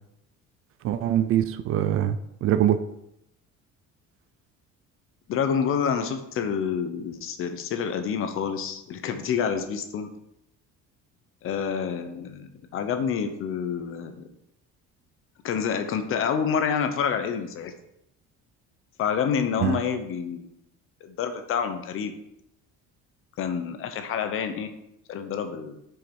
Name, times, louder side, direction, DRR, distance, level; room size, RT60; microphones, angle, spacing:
voice 1, 0.8-2.8 19.6-19.8, right 11 dB, 50° right, 12 dB, 0.5 m, -23 dB
voice 2, 5.3-10.1 11.4-14.3 15.4-17.7 19.0-20.5 21.0-22.1 23.4-24.7 25.1-25.8, left 7 dB, 45° left, 8 dB, 0.9 m, -28 dB
7.4 x 5.6 x 5.4 m, 0.80 s
cardioid pair, 175°, 29 cm